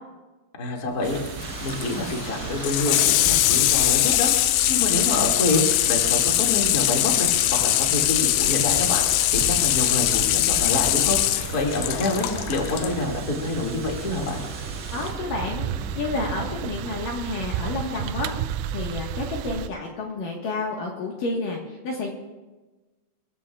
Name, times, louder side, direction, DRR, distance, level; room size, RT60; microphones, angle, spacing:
voice 1, 0.5-1.2 1.6-4.3 4.7-9.0 9.3-14.4, left 2 dB, 35° left, -1 dB, 1.4 m, -27 dB
sound 1, 1.0-19.7, right 10 dB, 85° right, 3.0 m, -35 dB
Water tap faucet / Sink (filling or washing), 1.1-12.9 14.2-14.3, left 15 dB, 85° left, 2.4 m, -22 dB
sound 2, 1.4-16.7, equal, 5° left, 3.9 m, -39 dB
voice 2, 14.9-15.7 16.0-18.3 18.7-22.1, left 3 dB, 60° left, -1 dB, 2.5 m, -30 dB
26.0 x 15.5 x 2.4 m, 1.2 s
omnidirectional pair, 5.6 m